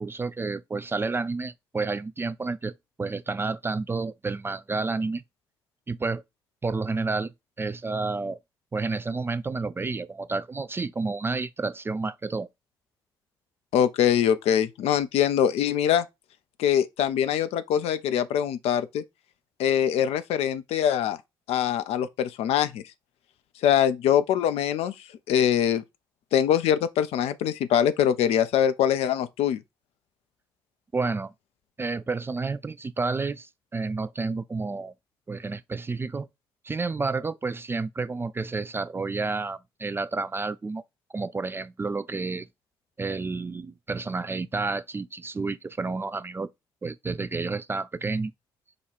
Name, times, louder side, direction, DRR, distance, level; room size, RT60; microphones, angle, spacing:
voice 1, 0.0-5.2 5.9-6.2 6.6-8.4 8.7-12.5 30.9-31.3 31.8-34.9 35.3-36.3 36.6-40.8 41.1-42.5 43.0-46.5 46.8-48.3, right 3 dB, 20° right, 0.3 m, -30 dB
voice 2, 13.7-16.0 16.6-19.0 19.6-21.2 21.5-22.8 23.6-24.9 25.3-25.8 26.3-29.6, left 9 dB, 60° left, 0.5 m, -23 dB
5.0 x 2.3 x 4.3 m
figure-of-eight pair, 40°, 12 cm